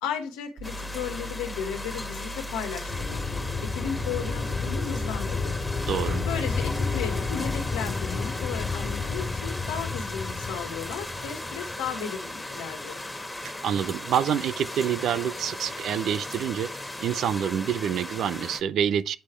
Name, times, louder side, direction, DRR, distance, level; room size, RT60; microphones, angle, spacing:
voice 1, 0.0-3.2 3.6-5.6 6.3-13.0, left 7 dB, 85° left, 1.4 m, -35 dB
sound 1, 0.6-18.6, left 1 dB, 15° left, 1.8 m, -37 dB
Mechanical fan, 0.6-7.6, equal, 55° right, 2.2 m, -40 dB
sound 2, 2.9-11.9, left 4 dB, 45° left, 2.0 m, -31 dB
voice 2, 5.9-6.3 13.4-16.7 17.0-19.2, right 9 dB, 70° right, 0.6 m, -27 dB
9.2 x 4.9 x 4.5 m
hypercardioid pair, 45°, 0 cm